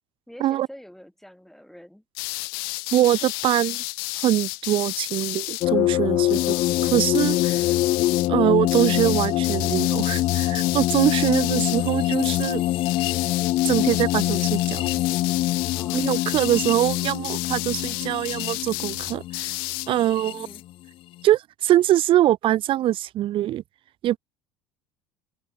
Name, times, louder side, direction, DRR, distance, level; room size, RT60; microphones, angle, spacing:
voice 1, 0.3-2.0 5.9-6.7 11.2-11.3 15.7-16.1 20.2-20.6, equal, ahead, 4.8 m, -46 dB
sound 1, 2.1-5.7 6.3-8.3 8.7-11.9 12.2-12.6 12.8-19.9, left 29 dB, 65° left, 1.1 m, -32 dB
voice 2, 2.9-3.8 4.1-6.4 6.9-7.7 8.3-12.6 13.6-14.8 15.9-19.5 19.9-20.5 21.2-23.6 24.0-24.2, right 13 dB, 45° right, 0.6 m, -23 dB
sound 2, 5.6-20.6, left 15 dB, 45° left, 0.4 m, -24 dB
open air
hypercardioid pair, 70°, 13 cm